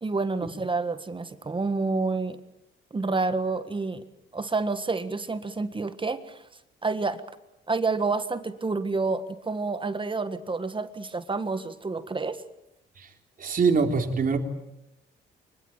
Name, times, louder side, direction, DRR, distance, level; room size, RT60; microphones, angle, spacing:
voice 1, 0.0-2.4 2.9-4.0 4.3-6.4 6.8-7.2 7.7-12.4, right 3 dB, 25° right, 11 dB, 1.6 m, -29 dB
voice 2, 13.4-14.4, right 5 dB, 45° right, 4 dB, 3.6 m, -23 dB
24.0 x 21.5 x 9.0 m, 0.84 s
cardioid pair, 90°, 20 cm